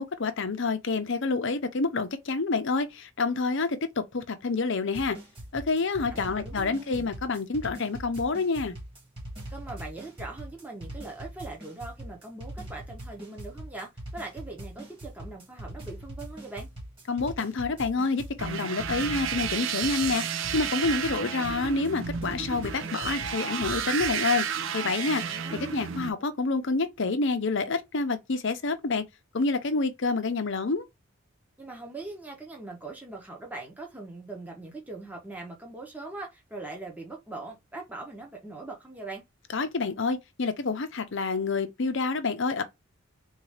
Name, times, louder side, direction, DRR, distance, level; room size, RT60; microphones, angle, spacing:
voice 1, 0.0-5.2 5.5-8.8 17.1-20.2 20.5-24.5 24.7-29.0 29.3-30.9 39.5-42.6, left 3 dB, 60° left, 0.7 m, -28 dB
sound 1, 4.9-24.2, right 1 dB, 25° right, 1.9 m, -41 dB
voice 2, 6.1-7.1 9.5-16.7 25.0-25.7 31.6-39.2, right 2 dB, 10° right, 1.1 m, -41 dB
sound 2, 18.4-26.1, right 8 dB, 65° right, 0.6 m, -32 dB
4.0 x 2.7 x 4.8 m
head